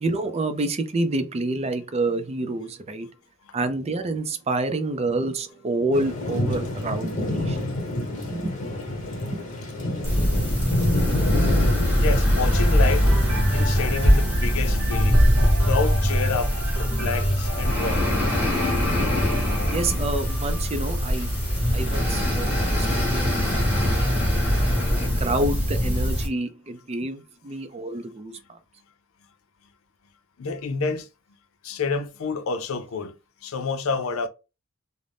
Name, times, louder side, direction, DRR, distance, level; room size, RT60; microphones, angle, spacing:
voice 1, 0.0-3.1 3.5-7.6 8.3-8.5 9.3-9.4 19.7-21.3 21.7-23.6 24.7-28.6, right 2 dB, 30° right, 0.4 m, -28 dB
Thunder / Rain, 5.9-23.0, left 1 dB, 40° left, 1.0 m, -31 dB
sound 1, 10.0-26.3, equal, 5° right, 1.0 m, -22 dB
voice 2, 12.0-13.1 13.5-15.2 15.6-16.5 16.8-18.1 24.5-24.6 30.4-31.1 31.6-33.2 33.4-34.3, left 4 dB, 75° left, 0.5 m, -28 dB
sound 2, 12.5-22.3 22.9-23.0, equal, 85° right, 0.9 m, -30 dB
2.5 x 2.0 x 3.3 m
head